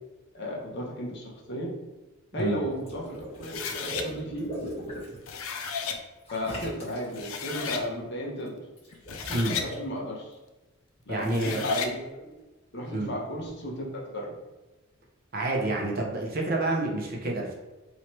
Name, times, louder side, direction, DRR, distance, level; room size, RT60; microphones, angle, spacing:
voice 1, 0.3-1.8 2.3-4.5 6.3-8.6 9.3-10.4 11.1-12.2 12.7-14.3, equal, 55° left, -2 dB, 0.9 m, -34 dB
Water / Liquid, 2.7-5.2 6.2-7.3 8.8-9.7, equal, 25° left, 1.3 m, -39 dB
sound 1, 3.4-4.1 5.1-6.0 6.8-6.9 7.2-7.9 8.9-9.7 11.2-11.9, left 5 dB, 80° left, 0.5 m, -33 dB
voice 2, 11.1-11.6 12.9-13.1 15.3-17.5, right 2 dB, 45° right, -1 dB, 0.8 m, -28 dB
3.0 x 2.9 x 4.4 m, 1.1 s
head